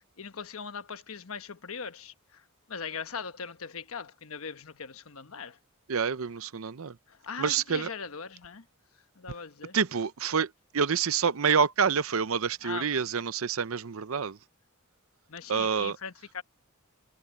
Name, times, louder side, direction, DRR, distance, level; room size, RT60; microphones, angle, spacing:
voice 1, 0.2-2.1 2.7-5.6 7.1-8.6 9.2-9.8 12.6-13.0 15.3-16.4, left 6 dB, 70° left, 1.2 m, -40 dB
voice 2, 5.9-7.0 7.4-7.9 9.7-14.4 15.5-16.0, right 6 dB, 70° right, 0.7 m, -27 dB
head